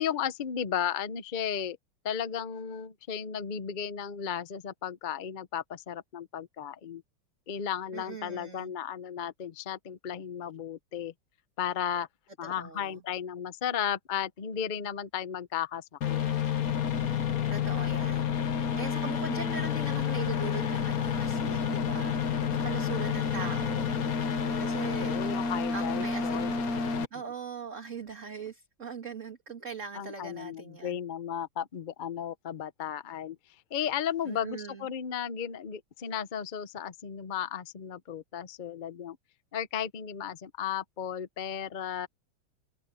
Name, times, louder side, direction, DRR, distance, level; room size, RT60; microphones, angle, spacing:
voice 1, 0.0-1.8 2.0-7.0 7.5-11.1 11.6-12.1 12.4-16.2 25.0-26.5 29.9-33.4 33.7-39.2 39.5-42.1, left 8 dB, 75° left, 0.4 m, -34 dB
voice 2, 7.9-8.7 12.4-13.0 17.5-24.3 24.6-25.2 25.7-26.6 27.1-31.0 34.2-34.9, right 5 dB, 35° right, 2.8 m, -41 dB
sound 1, 16.0-27.0, left 7 dB, 50° left, 1.5 m, -29 dB
omnidirectional pair, 2.3 m